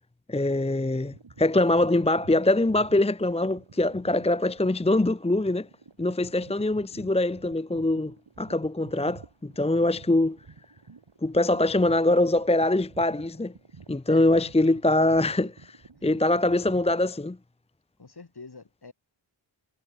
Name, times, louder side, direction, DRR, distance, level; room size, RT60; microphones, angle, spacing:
voice 1, 0.3-5.7 6.0-10.4 11.2-13.5 13.9-17.4, left 2 dB, 10° left, 0.8 m, -23 dB
sound 1, 0.9-17.0, right 4 dB, 60° right, 6.7 m, -50 dB
voice 2, 14.1-14.9 18.0-18.9, left 4 dB, 50° left, 6.8 m, -47 dB
wide cardioid pair, 65°, 49 cm